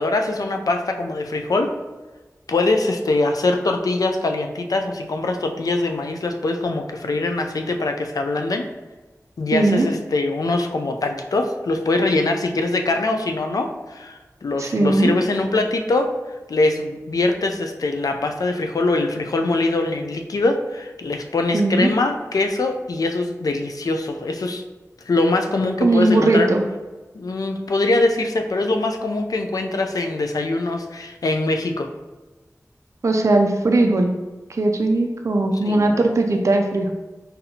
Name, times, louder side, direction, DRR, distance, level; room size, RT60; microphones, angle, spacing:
voice 1, 0.0-1.7 2.5-8.7 9.4-16.1 16.5-24.6 25.1-26.5 27.1-31.9 35.7-36.0, left 2 dB, 85° left, 4 dB, 0.4 m, -23 dB
voice 2, 9.5-9.9 14.6-15.1 21.5-21.9 25.8-26.6 33.0-34.1 34.5-36.9, right 2 dB, 55° right, 3 dB, 0.4 m, -18 dB
4.1 x 2.6 x 2.7 m, 1.2 s
wide cardioid pair, 60°, 6 cm